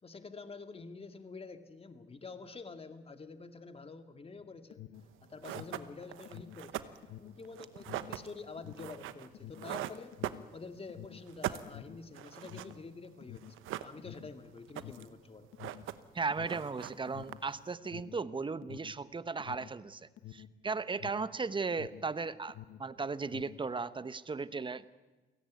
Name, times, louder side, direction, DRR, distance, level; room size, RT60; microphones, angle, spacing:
voice 1, 0.0-4.8 5.3-6.9 7.2-10.2 10.5-15.5, left 4 dB, 30° left, 8 dB, 2.2 m, -48 dB
Alarm, 4.4-22.2 22.4-23.7, left 12 dB, 80° left, 1.2 m, -50 dB
sound 1, 5.0-5.1 5.4-10.9 11.2-12.8 13.0-13.1 13.4-14.3 14.6-15.2 15.4-16.2 16.4-17.7, right 13 dB, 90° right, 1.0 m, -41 dB
voice 2, 16.1-24.9, right 4 dB, 25° right, 15 dB, 1.1 m, -36 dB
29.0 x 17.0 x 9.5 m, 1.2 s
cardioid pair, 90°, 20 cm